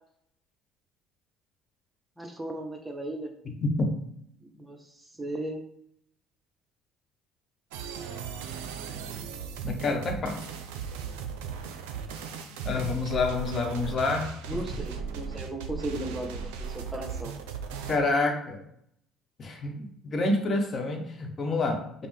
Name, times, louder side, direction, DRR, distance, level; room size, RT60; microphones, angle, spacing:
voice 1, 2.2-3.3 4.5-5.7 14.5-17.3, right 1 dB, 15° right, 3 dB, 0.8 m, -36 dB
sound 1, 7.7-18.0, right 6 dB, 90° right, 0.4 m, -37 dB
voice 2, 9.6-10.4 12.6-14.3 14.5-14.6 17.9-18.6 19.4-22.1, left 3 dB, 45° left, 3 dB, 1.0 m, -28 dB
5.2 x 2.1 x 3.2 m, 0.71 s
supercardioid pair, 80°, 0 cm